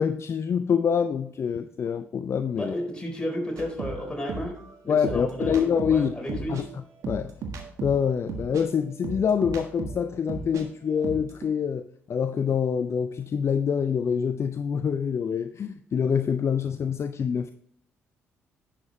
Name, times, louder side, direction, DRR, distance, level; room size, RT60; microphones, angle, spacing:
voice 1, 0.0-2.7 4.9-6.6 7.0-7.3 7.8-17.5, left 7 dB, 45° left, 11 dB, 0.5 m, -26 dB
voice 2, 2.5-4.6 4.8-6.7, equal, 15° left, 0 dB, 4.2 m, -33 dB
sound 1, 3.6-10.6 10.9-11.4, right 4 dB, 60° right, 1.5 m, -36 dB
10.5 x 7.5 x 3.2 m, 0.67 s
hypercardioid pair, 45°, 6 cm